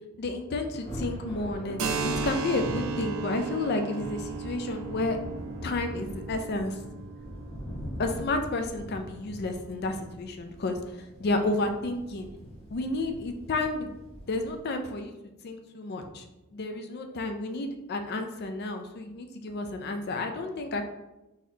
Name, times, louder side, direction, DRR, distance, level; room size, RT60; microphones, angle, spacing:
voice 1, 0.2-5.2 5.6-6.8 8.0-10.8 11.2-12.3 12.7-13.9 14.3-15.1 15.4-16.3 16.5-20.8, left 2 dB, 50° left, 6 dB, 0.4 m, -31 dB
Thunder, 0.7-14.6, equal, 30° left, 0.8 m, -42 dB
Keyboard (musical), 1.8-9.2, right 5 dB, 80° right, 0.4 m, -36 dB
3.9 x 2.9 x 2.7 m, 0.98 s
head